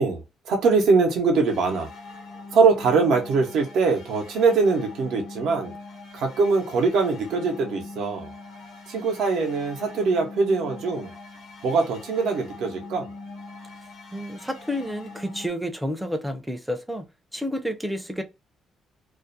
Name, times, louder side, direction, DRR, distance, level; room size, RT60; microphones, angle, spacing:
voice 1, 0.0-1.9 2.5-5.7 6.1-8.3 8.9-11.1 11.6-13.1, right 4 dB, 80° right, 0.6 m, -22 dB
sound 1, 1.4-15.5, left 3 dB, 70° left, 0.6 m, -42 dB
voice 2, 14.1-17.0 17.3-18.2, equal, 5° right, 0.4 m, -30 dB
2.3 x 2.1 x 2.6 m
cardioid pair, 90°, 0 cm